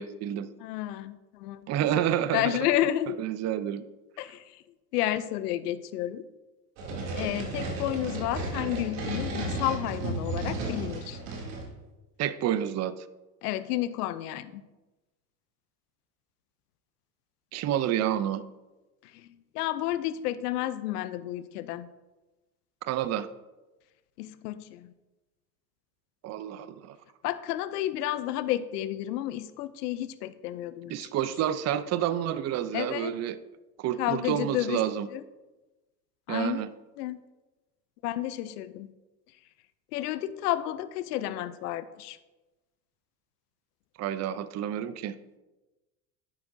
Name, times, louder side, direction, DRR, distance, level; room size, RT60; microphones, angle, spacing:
voice 1, 0.0-0.5 1.7-2.6 3.2-3.8 12.2-12.9 17.5-18.4 22.8-23.3 26.2-27.0 30.9-33.4 33.8-35.1 36.3-36.7 44.0-45.2, right 11 dB, 35° right, 14 dB, 0.5 m, -29 dB
voice 2, 0.6-1.7 2.0-2.1 2.3-3.2 4.2-4.6 4.9-6.3 7.2-11.2 13.4-14.6 19.0-21.9 24.2-24.9 27.2-31.1 32.7-33.1 34.0-34.8 35.1-35.2 36.3-36.6 37.0-37.2 38.0-38.9 39.9-42.2, left 13 dB, 80° left, 14 dB, 0.6 m, -31 dB
sound 1, 6.8-11.7, right 2 dB, 65° right, 2.8 m, -33 dB
10.0 x 8.7 x 2.7 m, 1.1 s
hypercardioid pair, 80°, 46 cm